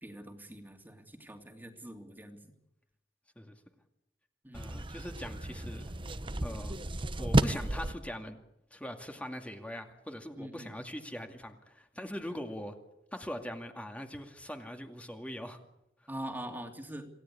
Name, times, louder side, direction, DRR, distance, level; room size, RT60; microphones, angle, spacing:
voice 1, 0.0-2.4 4.4-4.7 10.4-10.7 16.1-17.1, right 1 dB, 10° right, 4 dB, 2.8 m, -43 dB
voice 2, 4.5-6.0 6.4-6.8 7.2-8.4 8.7-12.8 13.1-15.6, equal, 10° left, 4 dB, 2.3 m, -41 dB
sound 1, 4.5-7.9, right 1 dB, 30° right, 1.1 m, -32 dB
27.5 x 17.0 x 8.7 m, 0.85 s
head